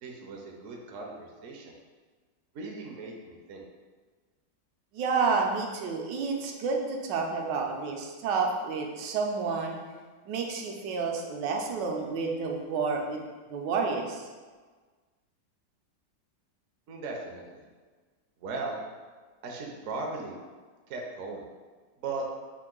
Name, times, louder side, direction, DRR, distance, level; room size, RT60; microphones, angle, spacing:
voice 1, 0.0-1.8 2.5-3.6 16.9-17.7 18.4-18.8 19.4-20.4 20.9-21.5 22.0-22.3, right 3 dB, 65° right, 0 dB, 0.8 m, -37 dB
voice 2, 4.9-9.8 10.3-13.2 13.5-14.3, right 4 dB, 80° right, 2 dB, 1.3 m, -30 dB
4.6 x 2.5 x 3.7 m, 1.4 s
omnidirectional pair, 1.9 m